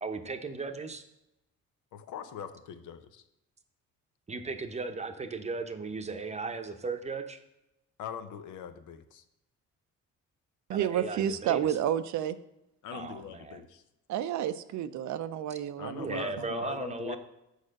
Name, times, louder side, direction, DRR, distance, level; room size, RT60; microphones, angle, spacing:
voice 1, 0.0-1.0 4.3-7.4 10.7-11.8 12.9-13.6 16.0-17.2, right 4 dB, 20° right, 7 dB, 0.8 m, -36 dB
voice 2, 1.9-3.2 8.0-9.2 12.8-13.8 15.8-17.2, left 8 dB, 80° left, 10 dB, 0.7 m, -41 dB
voice 3, 10.7-12.4 14.1-16.3, right 10 dB, 70° right, 12 dB, 0.5 m, -30 dB
6.5 x 4.9 x 6.4 m, 0.89 s
cardioid pair, 90°, 30 cm